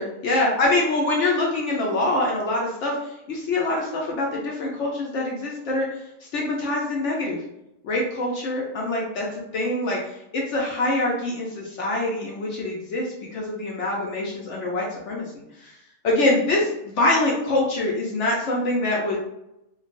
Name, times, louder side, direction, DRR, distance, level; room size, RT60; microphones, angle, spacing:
voice 1, 0.0-5.9 6.3-7.4 7.8-15.2 15.6-15.7 16.0-19.2, left 2 dB, 65° left, -2 dB, 0.8 m, -24 dB
3.2 x 2.3 x 2.5 m, 0.87 s
omnidirectional pair, 1.6 m